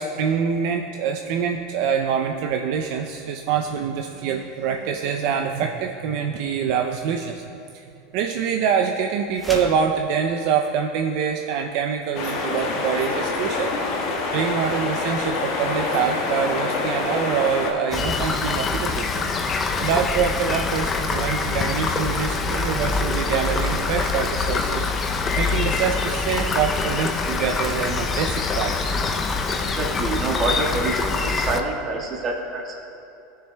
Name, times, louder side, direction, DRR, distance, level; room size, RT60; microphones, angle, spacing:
voice 1, 0.0-7.4 7.7-7.8 8.1-13.7 14.3-25.1 25.4-29.0, right 7 dB, 60° right, 3 dB, 0.4 m, -25 dB
sound 1, 9.3-9.9, right 1 dB, 5° right, 1.1 m, -32 dB
sound 2, 12.1-17.7, left 3 dB, 55° left, 1.3 m, -26 dB
Rain, 17.9-31.6, left 4 dB, 25° left, 0.5 m, -24 dB
voice 2, 29.6-32.8, right 3 dB, 30° right, -1 dB, 1.4 m, -27 dB
17.0 x 6.7 x 2.2 m, 2.7 s
supercardioid pair, 140°, 0 cm